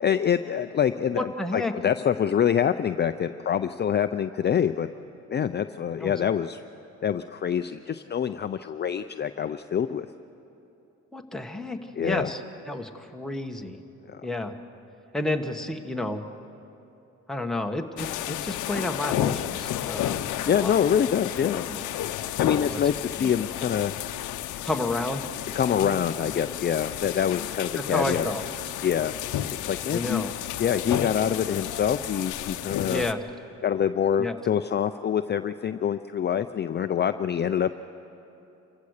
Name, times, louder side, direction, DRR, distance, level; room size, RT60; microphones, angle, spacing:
voice 1, 0.0-4.9 5.3-6.6 7.0-10.1 12.0-12.3 14.1-14.3 20.5-21.6 22.4-23.9 25.5-28.2 28.8-29.1 29.6-30.3 30.6-33.0 33.6-37.7, left 8 dB, 35° left, 10 dB, 0.5 m, -25 dB
voice 2, 1.1-1.7 6.0-6.2 11.1-13.8 14.2-14.5 15.1-16.2 17.3-20.8 21.7-21.8 22.7-22.8 23.2-23.3 24.6-25.2 27.9-28.4 29.9-30.3 32.9-33.2 34.2-34.4, left 1 dB, ahead, 3 dB, 1.4 m, -31 dB
sound 1, 18.0-33.1, left 12 dB, 85° left, 0.7 m, -32 dB
28.0 x 15.5 x 6.6 m, 2.9 s
cardioid pair, 90°, 30 cm